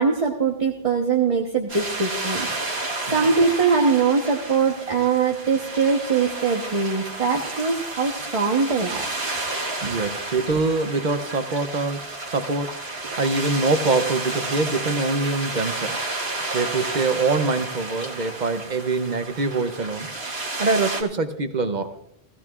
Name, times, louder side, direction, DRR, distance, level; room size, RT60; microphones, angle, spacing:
voice 1, 0.0-9.0, right 5 dB, 30° right, 1 dB, 1.1 m, -22 dB
sound 1, 1.7-21.0, right 2 dB, 70° right, 1.8 m, -31 dB
voice 2, 9.8-16.1 16.5-20.1 20.6-22.0, right 3 dB, 50° right, 9 dB, 0.8 m, -24 dB
16.5 x 15.0 x 2.4 m, 0.78 s
omnidirectional pair, 1.1 m